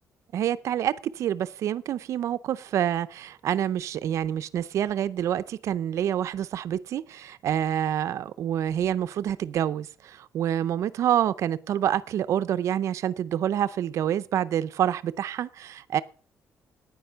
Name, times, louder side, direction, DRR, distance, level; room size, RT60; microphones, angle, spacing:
voice 1, 0.3-16.0, right 10 dB, 60° right, 0.5 m, -27 dB
9.6 x 9.5 x 6.6 m
cardioid pair, 180°, 6 cm